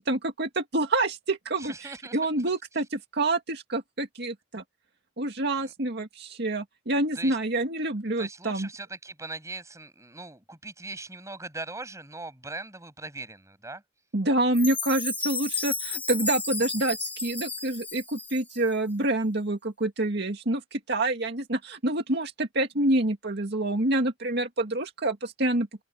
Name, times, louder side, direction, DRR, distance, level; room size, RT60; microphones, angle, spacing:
voice 1, 0.0-4.6 5.2-8.7 14.1-25.7, right 2 dB, 60° right, 2.2 m, -27 dB
voice 2, 1.6-2.2 5.6-5.7 7.1-7.4 8.2-13.8, right 3 dB, 15° right, 7.7 m, -40 dB
Chime, 14.5-18.7, left 2 dB, 10° left, 2.8 m, -33 dB
open air
head